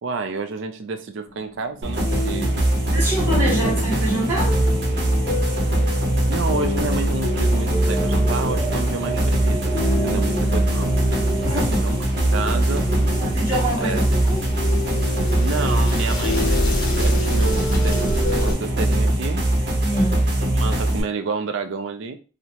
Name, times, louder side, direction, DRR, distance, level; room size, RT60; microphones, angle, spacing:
voice 1, 0.0-2.6 3.0-3.1 3.4-3.8 6.3-10.9 11.4-12.1 12.3-12.9 13.8-14.0 15.4-16.5 17.0-19.5 20.4-22.2, right 4 dB, 90° right, 0.4 m, -30 dB
sound 1, 1.3-18.5, left 2 dB, 50° left, 0.8 m, -29 dB
sound 2, 1.8-21.0, right 1 dB, 60° right, 0.8 m, -21 dB
voice 2, 2.9-4.6 10.0-10.5 11.4-11.9 13.2-14.5 19.8-20.2, right 1 dB, 10° right, 0.8 m, -26 dB
sound 3, 7.2-19.1, right 3 dB, 10° left, 0.5 m, -33 dB
2.8 x 2.1 x 2.8 m
head